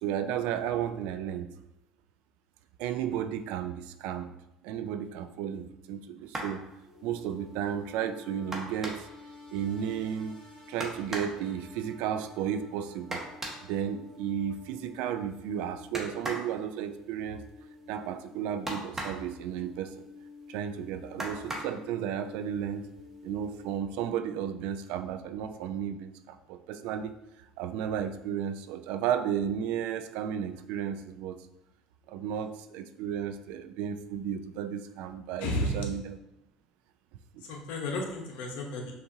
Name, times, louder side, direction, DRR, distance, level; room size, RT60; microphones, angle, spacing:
voice 1, 0.0-1.5 2.8-4.3 4.6-6.6 7.0-9.1 9.5-10.4 10.7-13.2 13.6-17.4 17.9-20.0 20.5-22.9 23.2-27.2 27.6-31.4 32.1-36.2, right 9 dB, 75° right, 9 dB, 0.3 m, -33 dB
sound 1, 6.2-6.6 8.5-9.2 10.8-11.4 13.1-13.7 15.9-16.5 18.7-19.3 21.2-21.8 22.9-23.0 23.4-23.7, right 1 dB, 15° right, 1.0 m, -37 dB
sound 2, 6.8-24.5, left 3 dB, 30° left, 1.5 m, -50 dB
voice 2, 35.4-35.9 37.4-39.0, left 1 dB, 75° left, 2 dB, 0.8 m, -33 dB
5.7 x 2.6 x 2.6 m, 0.88 s
supercardioid pair, 90°, 2 cm